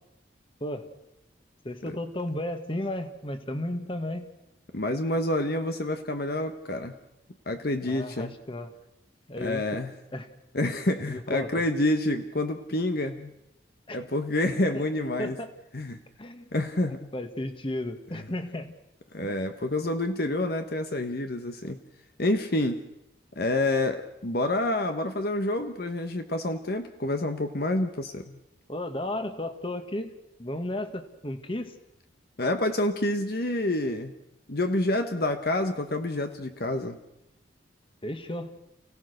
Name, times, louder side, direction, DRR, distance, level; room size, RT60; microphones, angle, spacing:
voice 1, 1.6-4.3 7.8-8.7 9.3-9.6 10.1-10.3 11.1-11.6 13.9-14.0 14.7-14.9 15.2-15.5 16.2-16.5 16.9-18.7 19.2-19.3 28.7-30.1 30.4-31.7 38.0-38.5, left 1 dB, 30° left, 8 dB, 1.6 m, -34 dB
voice 2, 4.7-6.9 7.5-8.3 9.4-9.9 10.5-13.3 13.9-15.4 15.7-16.0 16.5-17.1 18.1-18.2 19.1-21.8 22.2-22.8 23.4-28.4 32.4-34.1 34.5-37.0, left 1 dB, 55° left, 7 dB, 1.1 m, -28 dB
29.5 x 17.0 x 6.6 m, 0.89 s
head